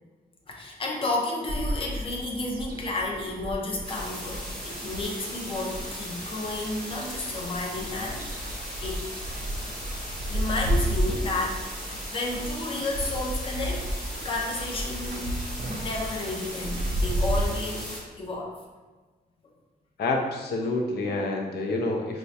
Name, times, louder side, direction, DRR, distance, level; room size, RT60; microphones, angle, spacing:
voice 1, 0.5-8.2 8.8-9.4 9.7-9.8 10.3-11.7 12.1-13.8 14.2-15.3 15.7-18.6, left 2 dB, 35° left, -1 dB, 0.5 m, -32 dB
sound 1, 1.5-17.4, right 1 dB, 65° right, 0.4 m, -33 dB
sound 2, 3.8-18.0, equal, 5° left, 0.8 m, -38 dB
voice 2, 20.0-22.2, left 2 dB, 85° left, 1 dB, 0.4 m, -28 dB
4.4 x 2.0 x 2.7 m, 1.3 s
wide cardioid pair, 170°, 17 cm